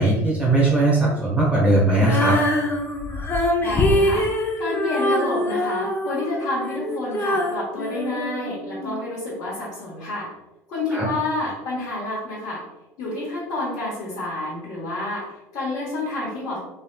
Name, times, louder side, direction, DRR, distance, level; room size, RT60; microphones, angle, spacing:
voice 1, 0.0-2.4 10.9-11.0, right 2 dB, 15° right, -6 dB, 1.0 m, -19 dB
Female singing, 2.0-9.0, left 1 dB, 30° left, 0.6 m, -24 dB
voice 2, 3.6-4.3 4.6-10.3 10.7-12.6 13.0-16.6, left 2 dB, 60° left, -9 dB, 1.2 m, -29 dB
3.1 x 2.6 x 2.2 m, 1.0 s
supercardioid pair, 85°, 8 cm